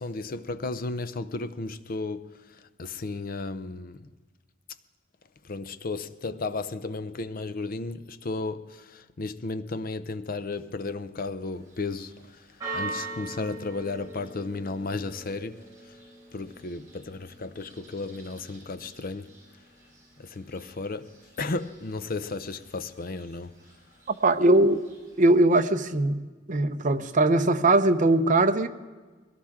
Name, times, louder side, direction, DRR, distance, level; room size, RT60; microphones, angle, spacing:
voice 1, 0.0-4.1 5.4-12.5 12.7-16.0 16.3-19.6 20.2-23.6, left 3 dB, 50° left, 0.6 m, -34 dB
Church bell, 11.5-25.4, right 3 dB, 20° right, 5.7 m, -44 dB
voice 2, 24.1-24.8 25.2-26.2 26.5-28.7, right 2 dB, 45° right, 0.7 m, -21 dB
22.0 x 17.5 x 3.7 m
head